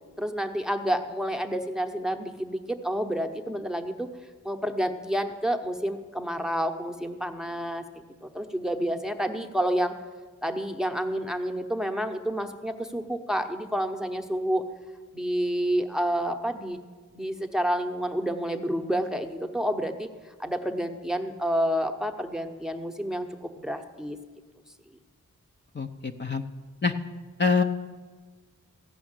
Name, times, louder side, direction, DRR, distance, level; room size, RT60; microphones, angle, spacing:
voice 1, 0.2-4.1 4.4-7.8 8.2-9.9 10.4-14.6 15.1-16.8 17.1-20.1 20.4-24.2, equal, ahead, 5 dB, 0.9 m, -29 dB
voice 2, 25.7-26.4 26.8-26.9 27.4-27.6, left 4 dB, 35° left, 4 dB, 0.7 m, -25 dB
15.0 x 5.7 x 8.9 m, 1.4 s
wide cardioid pair, 80°, 31 cm